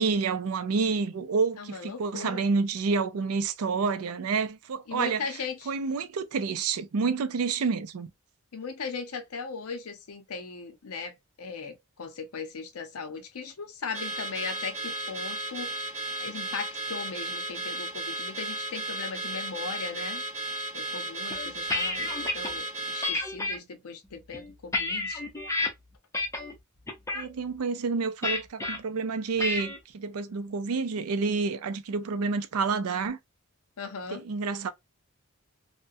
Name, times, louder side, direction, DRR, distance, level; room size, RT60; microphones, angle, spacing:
voice 1, 0.0-5.2 5.7-8.1 27.1-33.2 34.1-34.7, right 4 dB, 75° right, 0.4 m, -29 dB
voice 2, 1.6-2.5 4.9-5.7 8.5-20.2 20.7-25.2 33.8-34.2, left 5 dB, 80° left, 0.6 m, -38 dB
Car / Alarm, 13.9-23.2, right 2 dB, 30° right, 0.7 m, -35 dB
sound 1, 21.3-22.5 23.0-23.6 24.2-25.7 26.1-26.5 26.9-27.3 28.2-28.8 29.4-29.8, left 2 dB, 15° left, 0.5 m, -30 dB
2.4 x 2.1 x 2.5 m
head